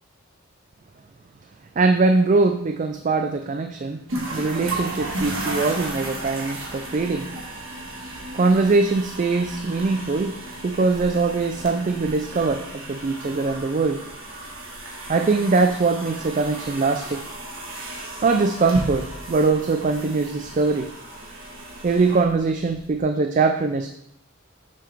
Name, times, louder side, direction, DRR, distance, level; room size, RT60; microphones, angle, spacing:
voice 1, 1.8-4.0 4.3-7.3 8.3-10.4 10.6-14.0 15.1-17.2 18.2-20.9 21.8-23.9, right 3 dB, 35° right, 6 dB, 0.3 m, -22 dB
sound 1, 4.1-23.0, right 2 dB, 75° right, 1.5 m, -34 dB
6.9 x 6.1 x 3.4 m, 0.73 s
head